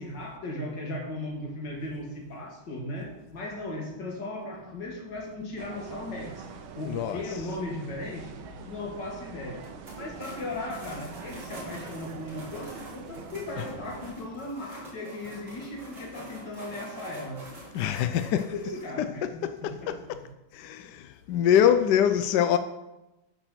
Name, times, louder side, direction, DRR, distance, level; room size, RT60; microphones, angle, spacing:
voice 1, 0.0-6.5 6.8-8.3 8.6-9.7 10.0-17.4 17.8-20.1 20.8-20.9, left 1 dB, 60° left, 2.6 m, -37 dB
sound 1, 5.6-14.1, right 5 dB, 85° right, 1.7 m, -44 dB
voice 2, 6.9-7.3 13.6-13.7 17.7-18.6 19.0-20.2 20.5-22.6, left 9 dB, 75° left, 1.0 m, -25 dB
sound 2, 9.6-18.8, right 1 dB, 55° right, 3.3 m, -46 dB
13.0 x 4.6 x 5.9 m
omnidirectional pair, 2.2 m